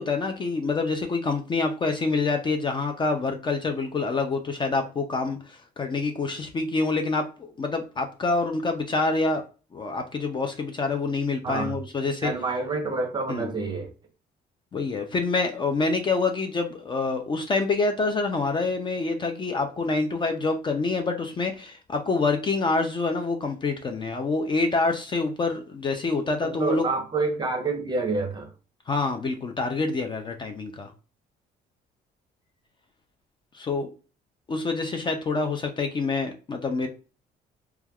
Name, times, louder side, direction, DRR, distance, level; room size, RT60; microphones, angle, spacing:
voice 1, 0.0-9.4 9.7-12.3 13.3-13.5 14.7-26.8 28.9-30.9 33.5-33.9 34.5-36.9, left 3 dB, 30° left, 0.4 m, -26 dB
voice 2, 11.4-11.7 12.2-13.9 26.4-28.5, right 3 dB, 25° right, 0.7 m, -28 dB
3.2 x 2.3 x 2.2 m
cardioid pair, 110°, 17 cm